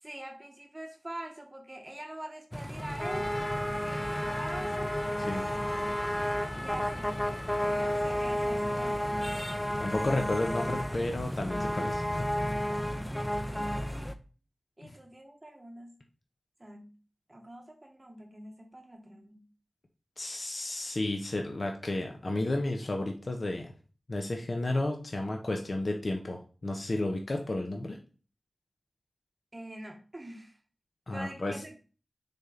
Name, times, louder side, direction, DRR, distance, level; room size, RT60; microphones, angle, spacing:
voice 1, 0.0-3.3 3.8-5.0 6.5-7.3 7.6-9.3 12.9-14.2 14.8-16.0 16.6-17.0 17.3-19.5 29.5-30.6 31.1-31.8, right 1 dB, 25° right, 3 dB, 0.9 m, -45 dB
sound 1, 2.5-14.1, equal, 10° left, 0.6 m, -32 dB
Trumpet, 2.8-8.1, left 1 dB, 35° left, 1.4 m, -44 dB
voice 2, 9.8-12.3 14.8-15.0 20.2-23.7 24.1-28.0 31.1-31.6, left 2 dB, 55° left, 2 dB, 0.9 m, -32 dB
6.4 x 4.3 x 3.8 m, 0.37 s
wide cardioid pair, 55°, 0 cm